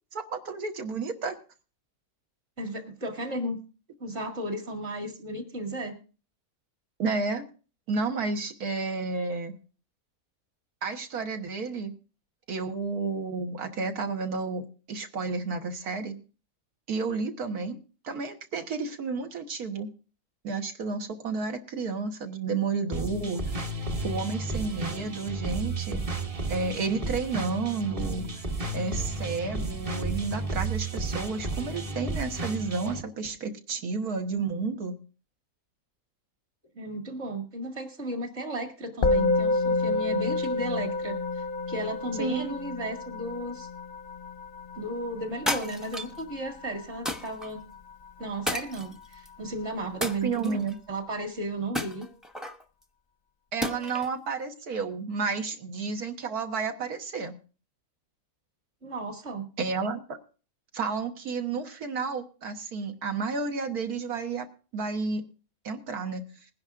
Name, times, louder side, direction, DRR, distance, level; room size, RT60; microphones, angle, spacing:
voice 1, 0.1-1.4 7.0-7.4 7.9-9.6 10.8-11.9 12.5-16.2 16.9-17.8 18.0-19.9 20.4-23.4 24.0-26.0 26.5-28.3 28.7-35.0 42.2-42.5 50.0-50.8 53.5-57.4 59.6-60.2 60.7-64.5 64.7-65.2 65.6-66.3, right 4 dB, 90° right, 5 dB, 1.8 m, -31 dB
voice 2, 2.6-3.6 4.0-6.0 36.8-41.2 41.7-43.7 44.8-47.6 48.2-50.6 50.9-52.1 58.8-59.5, right 1 dB, 50° right, 3 dB, 2.4 m, -34 dB
sound 1, 22.9-33.0, right 2 dB, 30° right, 0.8 m, -33 dB
Musical instrument, 39.0-48.5, left 3 dB, 50° left, 0.6 m, -30 dB
sound 2, 45.5-46.2 47.1-47.5 48.5-49.3 50.0-50.7 51.7-52.6 53.6-54.2, left 1 dB, ahead, 0.5 m, -33 dB
21.0 x 10.5 x 2.5 m, 0.36 s
omnidirectional pair, 1.5 m